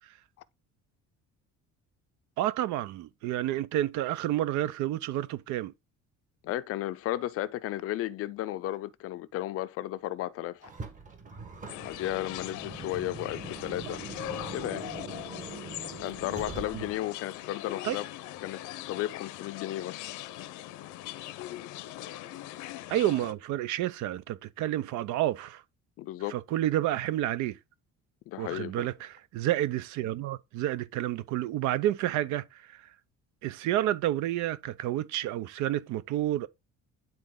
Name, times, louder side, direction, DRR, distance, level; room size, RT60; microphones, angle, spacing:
voice 1, 2.4-5.7 16.7-16.8 17.8-18.0 22.9-25.6 26.3-27.6 28.4-32.9 33.4-36.5, right 13 dB, 75° right, 0.7 m, -30 dB
voice 2, 6.4-10.7 11.8-14.0 14.5-14.9 16.0-18.1 18.4-18.6 18.9-20.0 26.0-26.3 28.3-28.9, left 14 dB, 50° left, 0.5 m, -34 dB
Car, 10.6-17.1, right 4 dB, 25° right, 1.3 m, -43 dB
sound 1, 11.7-23.3, left 14 dB, 85° left, 0.8 m, -41 dB
10.5 x 3.9 x 3.8 m
cardioid pair, 175°, 30 cm